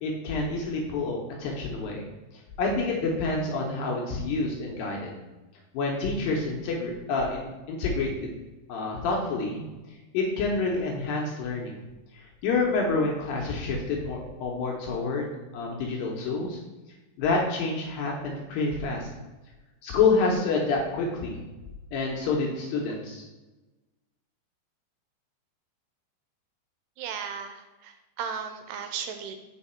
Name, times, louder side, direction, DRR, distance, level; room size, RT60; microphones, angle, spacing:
voice 1, 0.0-2.0 2.6-5.1 5.7-8.3 8.7-9.6 10.1-11.8 12.1-16.6 17.2-19.1 19.8-21.4 21.9-23.2, left 3 dB, 75° left, -1 dB, 2.2 m, -28 dB
voice 2, 27.0-29.4, right 7 dB, 80° right, 6 dB, 2.5 m, -36 dB
5.7 x 4.5 x 4.3 m, 1.1 s
omnidirectional pair, 4.8 m